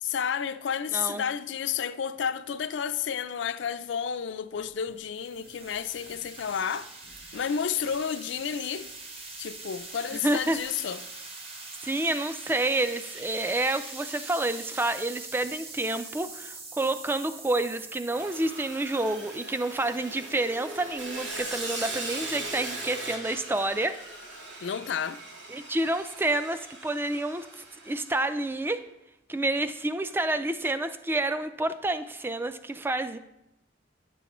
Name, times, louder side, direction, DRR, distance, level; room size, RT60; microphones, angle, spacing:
voice 1, 0.0-6.9 7.3-8.9 9.4-11.0 24.6-25.2, left 7 dB, 75° left, 0.4 m, -31 dB
voice 2, 0.9-1.2 10.2-10.6 11.8-24.0 25.5-28.8 29.3-33.2, right 2 dB, 10° right, 0.3 m, -29 dB
sound 1, 4.6-22.8, right 3 dB, 30° right, 0.9 m, -44 dB
Sawing, 18.1-28.4, right 2 dB, 70° right, 1.6 m, -39 dB
10.0 x 7.0 x 3.0 m
head